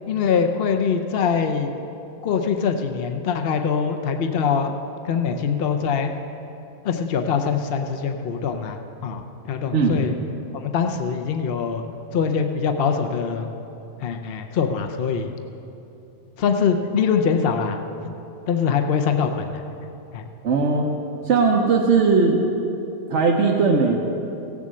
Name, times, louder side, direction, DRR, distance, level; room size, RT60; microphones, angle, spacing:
voice 1, 0.1-1.7 2.2-4.7 5.0-6.1 6.8-10.1 10.6-11.8 12.1-13.5 14.0-15.3 16.4-17.8 18.5-19.6 20.1-20.3, left 6 dB, 60° left, 5 dB, 0.9 m, -23 dB
voice 2, 20.4-20.8 21.2-22.4 23.1-24.0, right 4 dB, 90° right, 0 dB, 1.3 m, -18 dB
16.5 x 7.4 x 7.5 m, 2.9 s
omnidirectional pair, 1.2 m